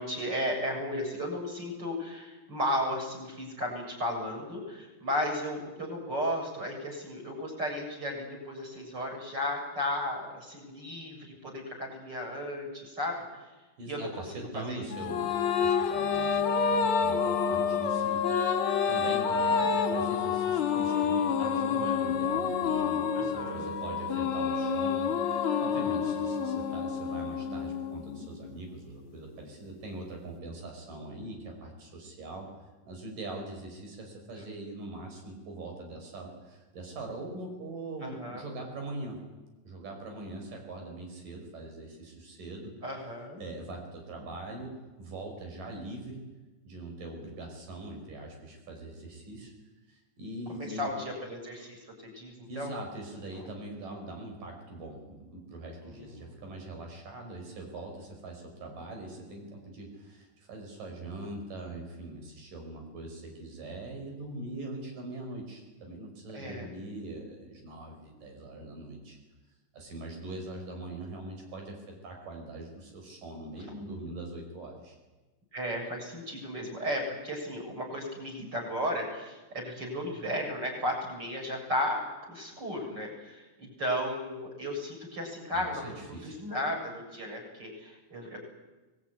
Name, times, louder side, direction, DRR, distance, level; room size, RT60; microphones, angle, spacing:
voice 1, 0.0-13.2 13.9-14.8 15.7-15.9 23.1-23.7 38.0-38.4 42.8-43.4 50.5-52.7 55.8-56.4 66.3-66.7 75.5-88.4, equal, 30° right, 1 dB, 7.7 m, -34 dB
voice 2, 13.8-32.5 32.8-39.2 39.7-42.7 43.4-46.3 46.7-49.5 49.9-50.9 52.4-69.2 69.7-75.0 85.5-86.4, right 2 dB, 75° right, 2 dB, 7.1 m, -42 dB
sound 1, 14.9-28.5, left 6 dB, 45° left, 2.3 m, -28 dB
24.0 x 20.5 x 9.8 m, 1.2 s
omnidirectional pair, 3.8 m